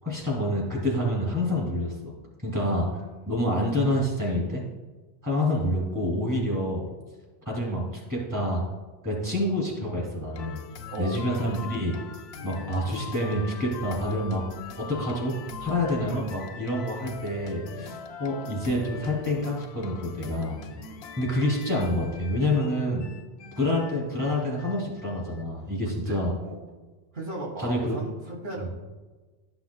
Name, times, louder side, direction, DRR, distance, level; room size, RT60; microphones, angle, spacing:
voice 1, 0.0-2.1 2.4-4.6 5.2-6.8 7.5-8.6 9.0-10.6 11.0-11.9 12.4-14.4 14.8-20.6 21.2-23.1 23.5-26.3 27.6-28.0 28.6-28.7, left 1 dB, 20° right, -3 dB, 2.5 m, -27 dB
voice 2, 2.5-3.4 6.4-6.5 10.9-11.3 17.7-18.0 20.2-21.1 25.8-26.2 26.4-26.7 27.1-28.7, right 2 dB, 70° right, -4 dB, 1.9 m, -38 dB
sound 1, 10.3-25.4, left 6 dB, 85° left, 0.8 m, -42 dB
12.0 x 5.9 x 2.3 m, 1.3 s
omnidirectional pair, 1.0 m